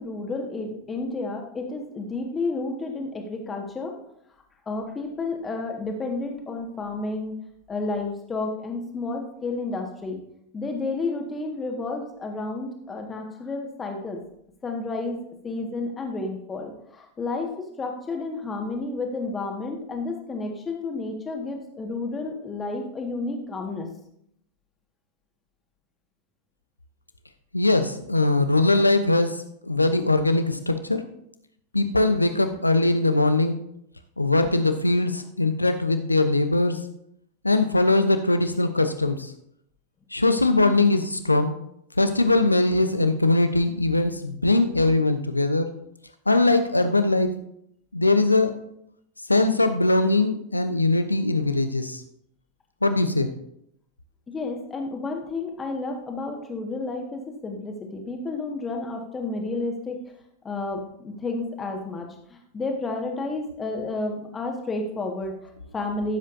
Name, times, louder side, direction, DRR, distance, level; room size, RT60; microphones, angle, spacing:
voice 1, 0.0-3.9 4.7-7.4 7.7-10.2 10.5-14.2 14.6-15.2 15.4-17.5 17.8-23.9 52.9-53.0 54.3-60.0 60.4-66.2, left 3 dB, 20° left, 2 dB, 1.8 m, -31 dB
voice 2, 27.5-31.0 31.7-33.6 34.2-36.8 37.4-39.3 40.1-41.5 42.0-45.7 46.3-47.3 47.9-48.6 49.3-52.0 52.8-53.3, left 2 dB, 85° left, 9 dB, 0.8 m, -21 dB
15.0 x 7.5 x 2.7 m, 0.73 s
figure-of-eight pair, 90°, 0 cm